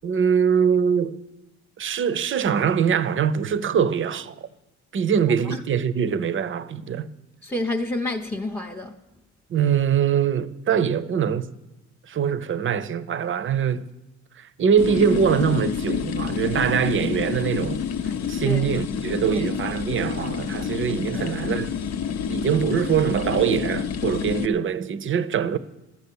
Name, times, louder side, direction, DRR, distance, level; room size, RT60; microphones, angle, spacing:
voice 1, 0.0-1.2 1.8-4.3 4.9-7.1 9.5-11.5 12.1-13.9 14.4-17.8 18.3-21.7 22.3-25.6, right 7 dB, 40° right, 0.6 m, -23 dB
voice 2, 7.4-9.0 18.4-18.7 19.3-19.5 21.2-21.4, left 2 dB, 5° left, 0.7 m, -29 dB
sound 1, 14.8-24.5, left 7 dB, 60° left, 0.7 m, -28 dB
13.0 x 6.9 x 8.4 m
cardioid pair, 90°, 30 cm